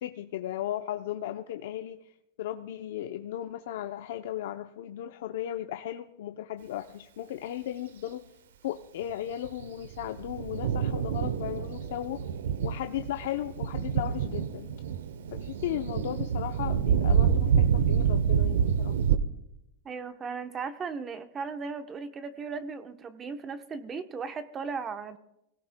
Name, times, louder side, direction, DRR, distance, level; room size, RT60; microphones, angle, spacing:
voice 1, 0.0-2.1 2.4-8.2 8.6-12.2 12.6-14.7 15.3-18.9, left 12 dB, 70° left, 0.6 m, -36 dB
Thunder, 9.4-19.2, right 7 dB, 85° right, 0.8 m, -27 dB
voice 2, 19.8-25.2, right 5 dB, 25° right, 0.9 m, -37 dB
24.0 x 17.0 x 2.2 m
supercardioid pair, 135°, 0 cm